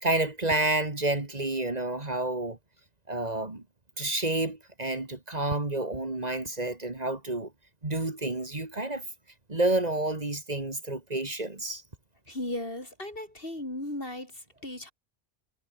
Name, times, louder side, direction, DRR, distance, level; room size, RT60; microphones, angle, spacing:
voice 1, 0.0-2.6 3.1-3.6 4.0-7.5 7.8-9.0 9.5-11.8, right 2 dB, 40° right, 2.4 m, -29 dB
voice 2, 12.3-14.9, left 1 dB, 60° left, 6.4 m, -36 dB
omnidirectional pair, 1.1 m